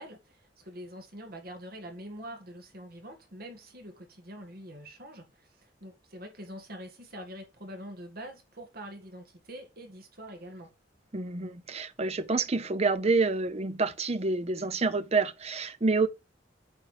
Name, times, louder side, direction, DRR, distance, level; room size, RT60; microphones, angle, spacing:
voice 1, 0.0-10.7, equal, 55° right, 1.9 m, -45 dB
voice 2, 11.1-16.1, right 3 dB, 35° right, 0.7 m, -28 dB
8.9 x 4.7 x 4.9 m
head